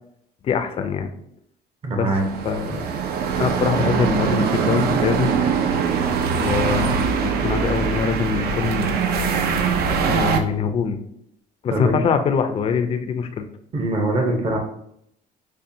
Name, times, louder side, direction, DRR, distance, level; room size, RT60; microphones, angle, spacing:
voice 1, 0.4-1.1 2.0-2.1 2.4-2.8 3.4-5.4 6.4-8.9 10.1-11.0 11.6-13.5, left 6 dB, 35° left, 7 dB, 0.4 m, -23 dB
voice 2, 1.8-2.2 11.7-12.0 13.7-14.6, right 2 dB, 35° right, 2 dB, 0.7 m, -22 dB
sound 1, 2.1-10.4, right 6 dB, 65° right, 0.4 m, -22 dB
5.3 x 2.2 x 2.6 m, 0.71 s
cardioid pair, 110°, 17 cm